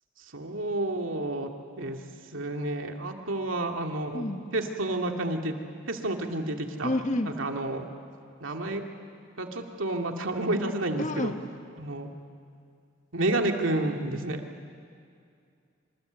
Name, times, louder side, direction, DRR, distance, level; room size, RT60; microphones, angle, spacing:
voice 1, 0.3-1.5 1.8-2.0 2.3-4.2 4.5-5.5 5.9-6.9 7.3-7.9 8.4-8.9 9.4-11.3 11.8-12.1 13.1-14.4, right 2 dB, 85° right, 3 dB, 2.4 m, -30 dB
voice 2, 6.8-7.3 11.0-11.4, left 1 dB, 40° left, 6 dB, 1.5 m, -29 dB
27.0 x 26.0 x 8.1 m, 2.4 s
head